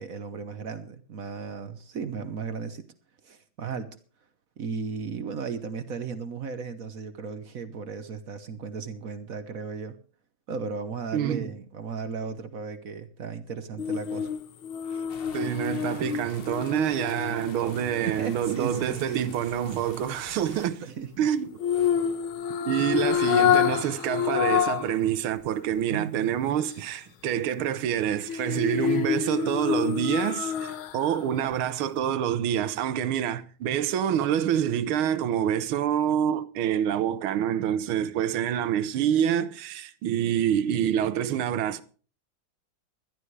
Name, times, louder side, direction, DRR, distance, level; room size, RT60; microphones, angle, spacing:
voice 1, 0.0-2.8 3.2-4.0 4.6-10.0 10.5-14.3 14.9-15.0 17.8-19.3 20.8-21.1 25.9-26.3, right 5 dB, 50° right, 1.2 m, -35 dB
voice 2, 11.1-11.5 15.3-20.8 21.2-21.5 22.6-41.8, right 9 dB, 85° right, 1.7 m, -27 dB
sound 1, 13.8-18.0 21.6-25.0 25.4-25.5 28.3-31.2 31.5-31.6, left 9 dB, 85° left, 1.8 m, -27 dB
sound 2, 15.1-20.7, left 5 dB, 40° left, 0.9 m, -47 dB
21.0 x 12.5 x 3.3 m
omnidirectional pair, 2.2 m